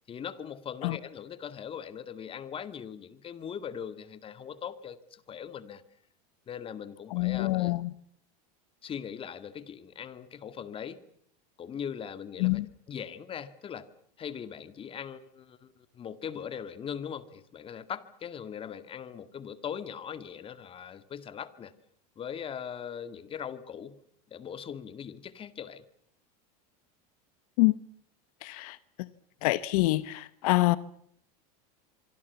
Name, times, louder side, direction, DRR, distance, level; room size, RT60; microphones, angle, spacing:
voice 1, 0.1-5.8 6.5-7.7 8.8-11.0 11.6-12.6 12.9-13.9 14.2-21.7 22.2-24.0 24.3-25.8, left 8 dB, 30° left, 2.1 m, -40 dB
voice 2, 7.1-7.9 12.4-12.7 27.6-27.8 28.4-29.1 29.4-30.8, left 20 dB, 70° left, 1.0 m, -26 dB
26.0 x 25.0 x 7.1 m
supercardioid pair, 130°, 19 cm